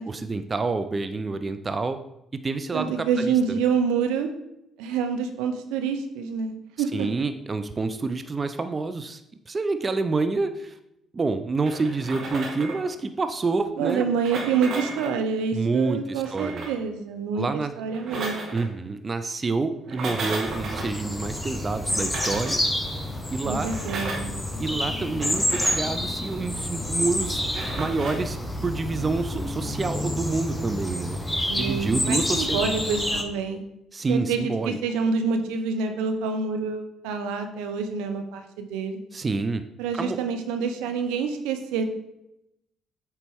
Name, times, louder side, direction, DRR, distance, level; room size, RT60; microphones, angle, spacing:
voice 1, 0.1-2.0 2.4-3.6 6.9-9.2 9.5-10.8 11.1-14.1 15.5-16.6 17.3-17.7 18.5-22.6 23.3-23.7 24.6-27.4 27.8-31.2 31.6-32.6 33.9-34.8 39.1-39.6 40.0-40.2, right 3 dB, 35° right, 9 dB, 0.5 m, -28 dB
voice 2, 2.7-4.3 4.8-7.1 13.8-18.5 23.4-24.4 31.5-33.6 34.1-39.0 39.8-41.9, right 5 dB, 75° right, 6 dB, 0.6 m, -27 dB
sound 1, 11.6-12.9 14.0-15.2 16.1-16.8 17.8-18.7 19.8-20.9 21.8-22.6 23.6-24.3 25.2-25.9 27.4-28.3, right 3 dB, 60° right, 1.5 m, -34 dB
sound 2, 20.4-33.2, left 1 dB, 10° left, 1.0 m, -29 dB
7.9 x 4.3 x 3.5 m, 0.83 s
hypercardioid pair, 50°, 0 cm